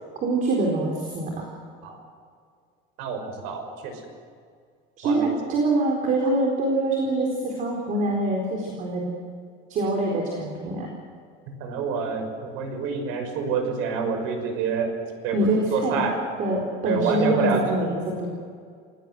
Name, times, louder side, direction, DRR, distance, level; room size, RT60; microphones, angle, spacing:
voice 1, 0.2-1.5 5.0-9.0 9.7-10.9 15.3-16.0 16.4-18.3, right 2 dB, 40° right, 0 dB, 4.3 m, -24 dB
voice 2, 3.0-3.9 5.0-5.3 11.5-14.9 15.2-16.2 16.8-17.7, right 5 dB, 85° right, 5 dB, 6.0 m, -27 dB
27.0 x 18.0 x 7.8 m, 2.1 s
cardioid pair, 175°, 21 cm